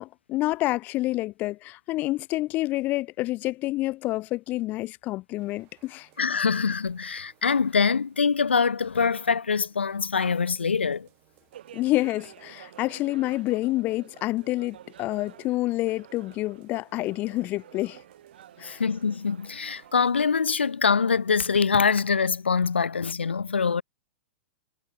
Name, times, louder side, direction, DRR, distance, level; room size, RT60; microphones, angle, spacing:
voice 1, 0.0-6.1 11.7-18.0 18.6-18.8, left 18 dB, 30° left, 0.4 m, -28 dB
sound 1, 5.4-22.4, right 29 dB, 40° right, 7.6 m, -64 dB
voice 2, 6.2-11.1 18.6-23.8, left 5 dB, 75° left, 0.7 m, -24 dB
sound 2, 11.5-20.1, right 11 dB, 55° right, 7.8 m, -50 dB
figure-of-eight pair, 100°, 6 cm